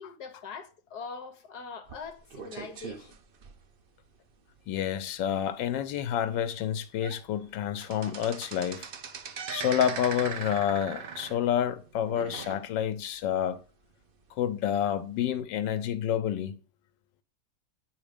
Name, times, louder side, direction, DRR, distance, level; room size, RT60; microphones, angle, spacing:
voice 1, 0.0-3.2, left 5 dB, 65° left, 1.4 m, -42 dB
sound 1, 1.9-4.1 4.6-4.7 5.1-5.2 5.7-5.8 6.5-6.6 6.9-7.2 7.5-13.0 13.4-13.5 14.3-14.4, right 6 dB, 80° right, 0.5 m, -40 dB
voice 2, 4.7-8.9 9.5-13.6 14.4-16.6, left 9 dB, 90° left, 1.4 m, -29 dB
9.6 x 3.9 x 5.0 m
omnidirectional pair, 1.9 m